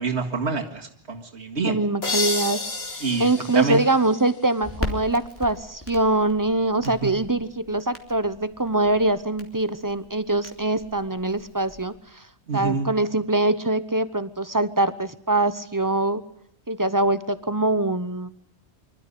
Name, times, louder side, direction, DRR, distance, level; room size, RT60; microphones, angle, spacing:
voice 1, 0.0-1.8 3.0-3.3 3.5-3.8 7.0-7.1 12.5-12.9, right 5 dB, 90° right, 1 dB, 2.3 m, -26 dB
voice 2, 1.6-2.6 3.2-12.3 12.5-16.2 16.7-18.3, right 2 dB, 20° right, 13 dB, 0.9 m, -23 dB
sound 1, 2.0-4.7, left 3 dB, 65° left, 2.2 m, -31 dB
Crackle, 4.6-11.9, left 1 dB, 10° left, 2.8 m, -39 dB
25.0 x 13.0 x 9.9 m, 0.72 s
omnidirectional pair, 1.1 m